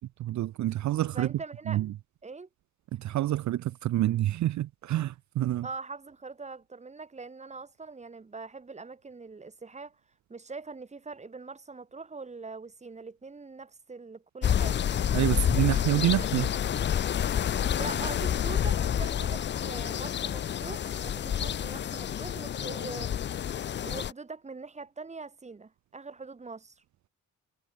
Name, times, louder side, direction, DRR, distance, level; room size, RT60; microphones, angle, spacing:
voice 1, 0.2-1.3 1.7-1.9 2.9-5.7 15.1-16.5, right 14 dB, 65° right, 0.5 m, -27 dB
voice 2, 1.1-1.8 2.2-2.5 5.6-10.0 10.3-14.8 17.6-23.2 23.8-26.8, right 4 dB, 20° right, 1.8 m, -42 dB
sound 1, 14.4-24.1, left 9 dB, 35° left, 0.4 m, -29 dB
wide cardioid pair, 145°, 31 cm